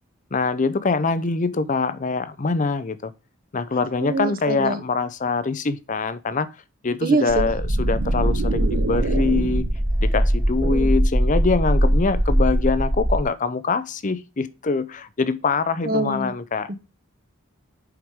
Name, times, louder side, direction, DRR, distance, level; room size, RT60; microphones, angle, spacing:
voice 1, 0.3-3.1 3.5-6.5 6.8-9.6 10.0-16.7, left 4 dB, 40° left, 0.6 m, -24 dB
voice 2, 4.0-4.8 7.0-7.5 10.6-10.9 15.8-16.3 16.7-16.8, right 2 dB, 45° right, 1.0 m, -25 dB
sound 1, 7.3-13.2, equal, 5° right, 0.3 m, -21 dB
sound 2, 7.4-9.9, right 5 dB, 75° right, 0.4 m, -30 dB
7.9 x 5.0 x 3.6 m
head